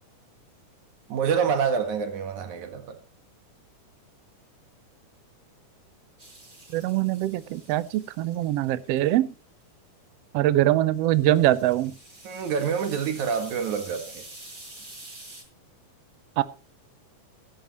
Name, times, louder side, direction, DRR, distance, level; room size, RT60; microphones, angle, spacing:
voice 1, 1.1-3.0 12.2-14.2, right 6 dB, 65° right, 3.1 m, -27 dB
sound 1, 6.2-9.2 11.0-15.4, right 2 dB, 25° right, 5.0 m, -47 dB
voice 2, 6.7-9.3 10.3-11.9 16.4-16.5, right 14 dB, 85° right, 1.4 m, -23 dB
17.0 x 11.0 x 3.0 m
omnidirectional pair, 3.7 m